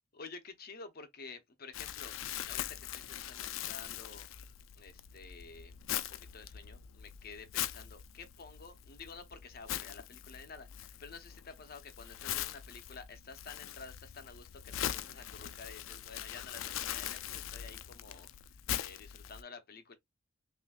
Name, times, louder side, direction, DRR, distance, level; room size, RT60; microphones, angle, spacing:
voice 1, 0.1-2.1 2.4-4.3 4.8-5.8 6.1-19.9, left 4 dB, 50° left, 0.7 m, -51 dB
Crumpling crinkling, 1.7-19.4, left 11 dB, 90° left, 0.4 m, -42 dB
5.9 x 2.5 x 2.3 m
head